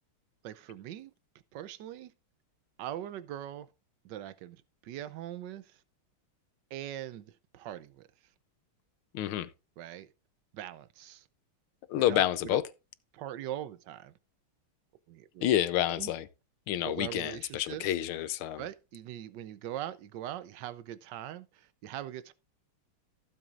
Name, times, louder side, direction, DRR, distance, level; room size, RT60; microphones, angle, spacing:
voice 1, 0.4-1.1 1.5-2.1 2.8-3.7 4.0-5.8 6.7-8.1 9.8-10.1 10.5-11.3 12.0-12.6 13.1-14.1 15.1-15.4 16.0-16.1 16.8-17.9 18.6-22.3, right 12 dB, 70° right, 1.1 m, -41 dB
voice 2, 9.1-9.5 11.9-12.6 15.4-16.3 16.7-18.6, left 12 dB, 75° left, 1.6 m, -29 dB
15.5 x 7.4 x 2.5 m
omnidirectional pair, 2.4 m